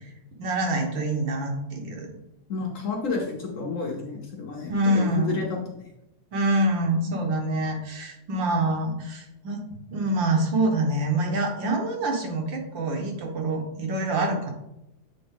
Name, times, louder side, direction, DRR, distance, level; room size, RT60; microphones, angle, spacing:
voice 1, 0.4-2.1 4.7-5.4 6.3-9.6 9.9-14.5, right 2 dB, 85° right, 2 dB, 1.9 m, -26 dB
voice 2, 2.5-5.9, left 4 dB, 55° left, 0 dB, 1.0 m, -30 dB
7.7 x 3.7 x 3.6 m, 0.87 s
omnidirectional pair, 2.0 m